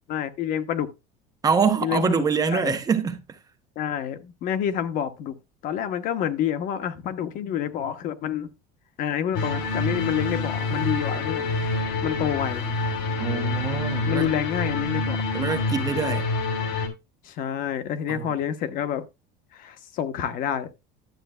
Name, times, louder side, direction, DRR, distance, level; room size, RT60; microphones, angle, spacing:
voice 1, 0.1-0.9 1.8-2.7 3.8-5.3 5.6-8.5 9.0-11.4 12.0-12.7 14.1-15.3 17.2-19.1 19.5-20.7, left 9 dB, 45° left, 1.0 m, -28 dB
voice 2, 1.4-3.4 13.2-14.3 15.3-16.3 18.1-18.3, right 5 dB, 20° right, 0.8 m, -25 dB
sound 1, 9.3-16.9, left 3 dB, 85° left, 2.7 m, -27 dB
11.5 x 7.7 x 2.2 m
cardioid pair, 165°, 19 cm